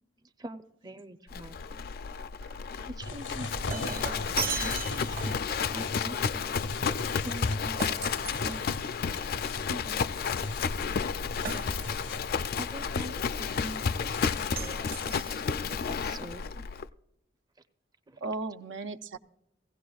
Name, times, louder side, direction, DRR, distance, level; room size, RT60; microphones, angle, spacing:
voice 1, 0.2-1.6 2.9-6.5 7.2-8.7 9.7-10.0 12.5-16.6 18.1-18.4, right 1 dB, 20° right, 8 dB, 0.6 m, -44 dB
Livestock farm animals working animals, 1.3-16.8, left 6 dB, 55° left, 0.4 m, -32 dB
sound 1, 3.0-14.9, left 2 dB, 90° left, 0.8 m, -41 dB
Shatter, 3.3-5.5 7.8-9.1 11.4-12.2 14.6-15.7, right 5 dB, 55° right, 1.1 m, -37 dB
voice 2, 4.4-4.8 6.9-7.0 18.2-19.2, right 3 dB, 75° right, 9 dB, 0.6 m, -37 dB
17.5 x 16.0 x 2.3 m, 0.85 s
head